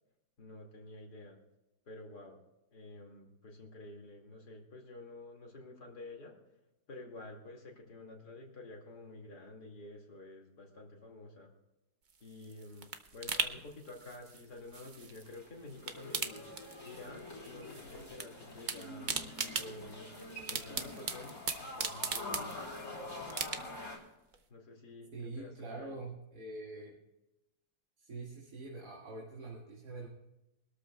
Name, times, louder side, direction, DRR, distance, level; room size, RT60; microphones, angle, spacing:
voice 1, 0.4-1.4 1.9-2.4 2.7-6.4 6.9-11.5 12.2-16.4 16.8-20.0 20.5-22.6 24.5-26.0, left 2 dB, 80° left, 0 dB, 2.8 m, -50 dB
Popping Bubble Wrap, 12.1-15.4 15.7-17.2 17.4-18.3 18.5-22.9 23.3-23.9 24.3-24.4, right 5 dB, 40° right, 0.8 m, -39 dB
sound 1, 15.0-24.0, left 2 dB, 65° left, 3.6 m, -46 dB
voice 2, 25.1-27.0 28.0-30.1, right 3 dB, 85° right, -4 dB, 2.6 m, -44 dB
24.0 x 13.0 x 2.3 m, 0.94 s
omnidirectional pair, 1.7 m